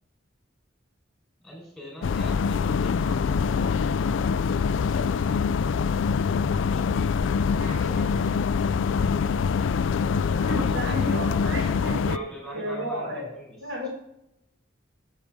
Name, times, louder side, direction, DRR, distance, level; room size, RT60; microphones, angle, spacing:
voice 1, 1.4-5.9 7.6-8.2 10.2-13.6 13.8-13.9, equal, ahead, -2 dB, 4.3 m, -44 dB
sound 1, 2.0-12.2, left 5 dB, 80° left, 0.4 m, -24 dB
voice 2, 7.5-9.9, right 2 dB, 50° right, -1 dB, 1.8 m, -45 dB
voice 3, 10.3-12.3 12.5-13.3 13.6-13.9, right 1 dB, 80° right, -3 dB, 4.9 m, -32 dB
16.0 x 6.6 x 3.6 m, 0.81 s
head